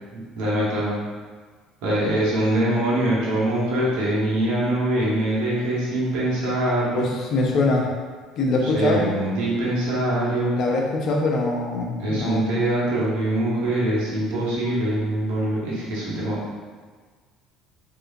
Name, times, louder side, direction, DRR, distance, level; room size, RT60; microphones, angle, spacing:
voice 1, 0.1-1.0 1.8-7.1 8.6-10.6 12.0-16.4, right 1 dB, 75° right, -6 dB, 1.1 m, -23 dB
voice 2, 6.9-7.9 8.4-9.0 10.5-12.5, left 2 dB, 55° left, 0 dB, 0.6 m, -23 dB
3.3 x 2.7 x 2.6 m, 1.5 s
hypercardioid pair, 70°, 0 cm